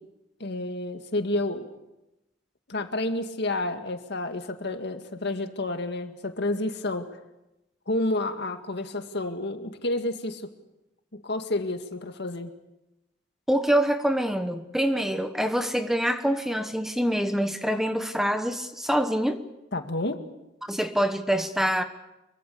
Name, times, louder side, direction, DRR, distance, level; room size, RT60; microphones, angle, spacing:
voice 1, 0.4-1.7 2.7-7.1 7.9-10.5 11.1-12.5 19.7-20.2, left 2 dB, 60° left, 7 dB, 2.0 m, -30 dB
voice 2, 13.5-19.4 20.7-21.8, equal, ahead, 8 dB, 1.1 m, -25 dB
25.5 x 23.5 x 7.0 m, 0.94 s
head